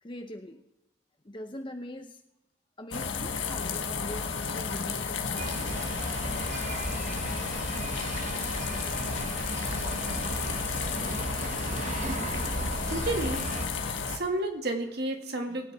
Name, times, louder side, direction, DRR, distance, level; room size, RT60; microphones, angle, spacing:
voice 1, 0.0-0.6 1.2-2.2 2.8-5.7, left 1 dB, 25° left, 5 dB, 0.8 m, -42 dB
sound 1, 2.9-14.2, left 5 dB, 90° left, 1.4 m, -33 dB
sound 2, 5.4-13.7, right 2 dB, 40° right, 0.9 m, -35 dB
voice 2, 12.9-13.4 13.8-15.7, right 1 dB, 55° right, 3 dB, 2.1 m, -31 dB
20.0 x 9.5 x 3.6 m, 0.93 s
head